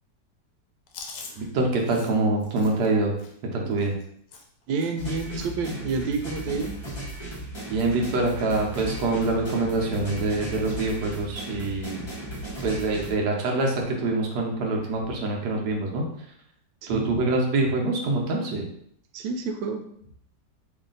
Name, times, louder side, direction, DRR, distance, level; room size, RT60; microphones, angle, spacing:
Chewing mastication, 0.9-5.1 5.4-5.6 5.9-6.8 7.1-7.4 7.6-8.3 8.8-8.9 9.9-10.4, left 4 dB, 75° left, 1.2 m, -46 dB
voice 1, 1.4-3.1 3.5-3.9 7.7-12.0 12.6-16.3 16.9-18.7, right 2 dB, 65° right, 0 dB, 1.3 m, -25 dB
voice 2, 4.7-6.7 16.8-17.1 19.1-19.8, right 4 dB, 90° right, 5 dB, 1.3 m, -29 dB
sound 1, 5.0-13.1, right 1 dB, 25° left, 0.5 m, -36 dB
3.2 x 2.6 x 3.8 m, 0.68 s
omnidirectional pair, 2.0 m